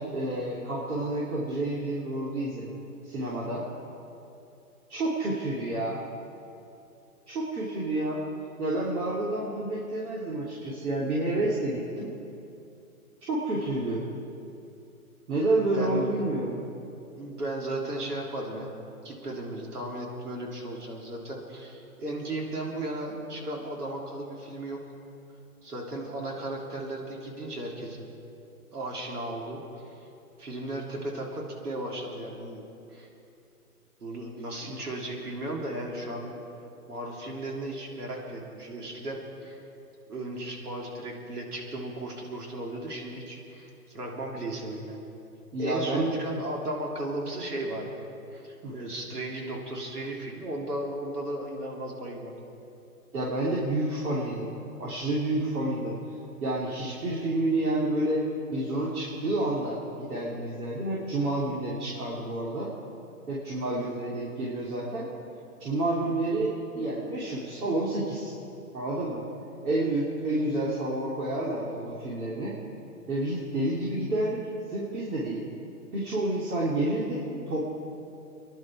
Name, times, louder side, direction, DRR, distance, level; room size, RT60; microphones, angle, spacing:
voice 1, 0.1-2.8 3.0-3.6 4.9-6.0 7.3-8.2 8.6-12.1 13.3-14.0 15.3-16.6 34.6-34.8 45.5-46.2 48.6-48.7 53.1-54.5 54.8-56.0 56.4-58.2 58.5-62.7 63.3-65.1 65.6-68.3 68.7-69.2 69.6-72.5 73.1-74.4 74.7-75.4 75.9-77.6, right 2 dB, 70° right, -6 dB, 3.4 m, -29 dB
voice 2, 15.7-16.1 17.2-18.7 19.0-24.8 25.6-28.1 28.7-30.0 30.4-32.6 32.9-33.1 34.0-36.4 36.9-39.6 40.1-45.1 45.6-52.4, right 1 dB, 90° right, -1 dB, 3.6 m, -35 dB
26.0 x 11.0 x 4.9 m, 2.7 s
hypercardioid pair, 145°, 45 cm